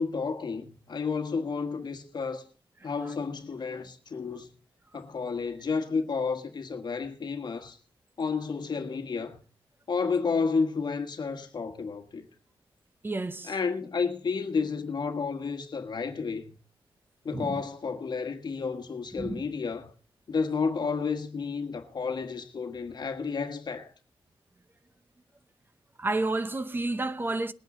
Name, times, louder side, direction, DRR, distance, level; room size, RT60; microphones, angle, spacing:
voice 1, 0.0-2.4 2.8-4.5 4.9-7.8 8.2-9.4 9.9-12.3 13.4-16.5 17.2-19.9 20.3-23.9, left 5 dB, 50° left, 1.5 m, -31 dB
voice 2, 13.0-13.5 17.3-17.5 19.2-19.5 26.0-27.5, right 2 dB, 20° right, 0.8 m, -30 dB
20.5 x 9.4 x 3.8 m
wide cardioid pair, 135°, 9 cm